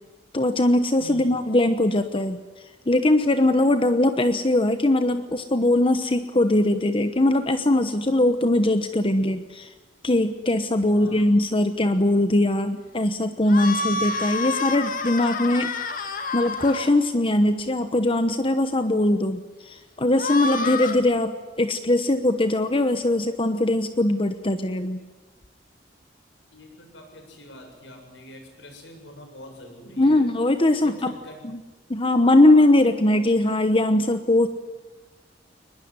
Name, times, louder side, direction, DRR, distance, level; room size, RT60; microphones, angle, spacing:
voice 1, 0.3-2.4 2.9-9.7 10.0-15.7 16.3-25.0 30.0-31.1 31.9-34.5, left 1 dB, 30° left, 9 dB, 1.1 m, -21 dB
voice 2, 1.0-1.3 10.9-11.3 13.9-14.2 26.5-30.3 30.8-31.5, equal, 80° left, 4 dB, 7.5 m, -44 dB
sound 1, 13.5-16.9 20.1-21.0, left 3 dB, 50° left, 2.4 m, -28 dB
22.5 x 20.5 x 9.7 m, 1.3 s
head